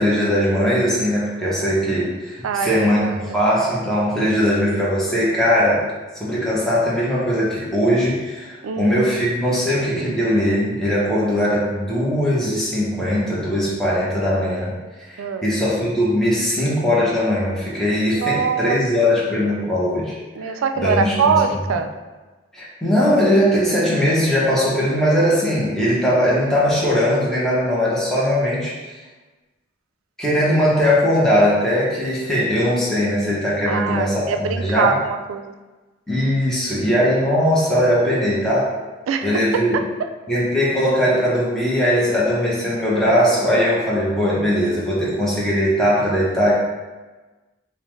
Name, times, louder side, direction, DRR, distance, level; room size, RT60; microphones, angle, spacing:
voice 1, 0.0-5.8 6.2-20.1 20.4-21.4 22.5-29.0 30.2-35.0 36.1-38.7 39.2-39.8 40.3-46.5, equal, ahead, -8 dB, 0.7 m, -20 dB
voice 2, 2.4-3.4 8.6-9.0 15.2-15.5 18.1-18.8 20.4-21.9 33.7-35.5 39.1-39.4 39.7-39.8, right 6 dB, 85° right, 7 dB, 0.3 m, -23 dB
5.3 x 2.1 x 3.1 m, 1.2 s
head